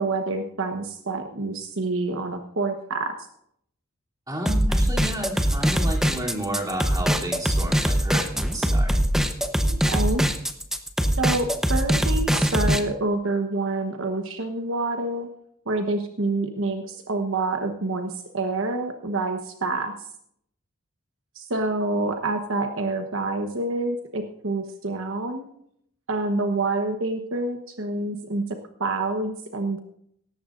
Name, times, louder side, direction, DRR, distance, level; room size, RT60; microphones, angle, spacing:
voice 1, 0.0-3.1 9.7-10.2 11.2-15.3 15.7-20.1 21.3-25.5 26.1-29.8, right 2 dB, 65° right, 5 dB, 1.1 m, -27 dB
voice 2, 4.3-9.0, right 1 dB, 20° right, -3 dB, 3.1 m, -32 dB
sound 1, 4.5-12.8, equal, ahead, 0.9 m, -22 dB
18.0 x 14.0 x 2.6 m, 0.69 s
head